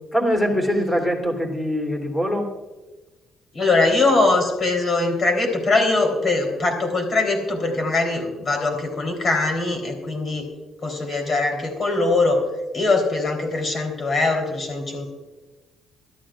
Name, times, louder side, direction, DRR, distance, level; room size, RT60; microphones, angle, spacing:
voice 1, 0.1-2.5, equal, 15° left, 1 dB, 3.3 m, -22 dB
voice 2, 3.5-10.5 10.8-12.4 12.7-15.1, left 3 dB, 45° left, 3 dB, 3.7 m, -21 dB
23.0 x 13.0 x 2.5 m, 1.2 s
cardioid pair, 90°, 0 cm